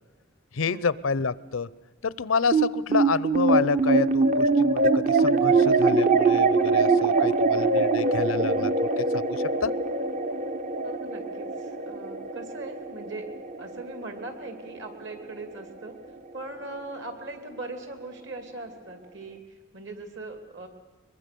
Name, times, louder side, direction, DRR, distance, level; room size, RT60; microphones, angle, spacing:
voice 1, 0.5-1.7 2.0-8.7 9.0-9.7, left 5 dB, 70° left, 19 dB, 0.6 m, -29 dB
sound 1, 2.5-15.1, right 3 dB, 35° right, 0.8 m, -23 dB
voice 2, 10.8-13.3 13.6-16.0 16.3-20.7, right 2 dB, 55° right, 7 dB, 2.8 m, -40 dB
23.0 x 22.5 x 6.8 m, 1.3 s
head